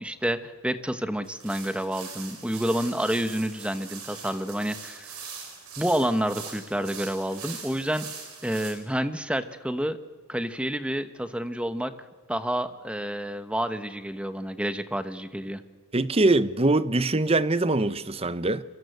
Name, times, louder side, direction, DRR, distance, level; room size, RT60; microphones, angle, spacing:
voice 1, 0.0-5.1 5.8-8.1 8.4-10.0 10.3-11.9 12.3-15.6, equal, 5° right, 1.2 m, -29 dB
sound 1, 1.2-8.7, right 6 dB, 80° right, 6.2 m, -42 dB
voice 2, 15.9-18.6, right 2 dB, 25° right, 0.9 m, -23 dB
27.5 x 24.0 x 8.1 m
head